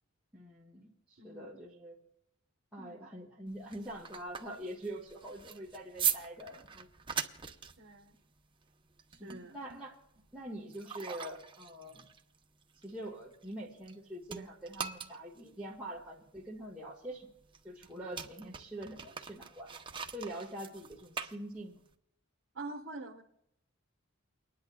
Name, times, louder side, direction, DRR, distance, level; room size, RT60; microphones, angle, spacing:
voice 1, 0.3-2.0 2.7-6.9 9.2-10.0 10.3-12.1 12.8-17.3 17.6-19.7 20.1-21.8, right 1 dB, 5° right, -7 dB, 1.7 m, -44 dB
voice 2, 1.2-1.5 2.8-3.1 7.8-8.2 9.1-9.6 22.5-23.2, right 3 dB, 65° right, -1 dB, 1.2 m, -45 dB
sound 1, 3.5-14.0 14.2-21.9, right 7 dB, 25° right, 0.8 m, -41 dB
29.5 x 10.5 x 2.3 m, 0.80 s
head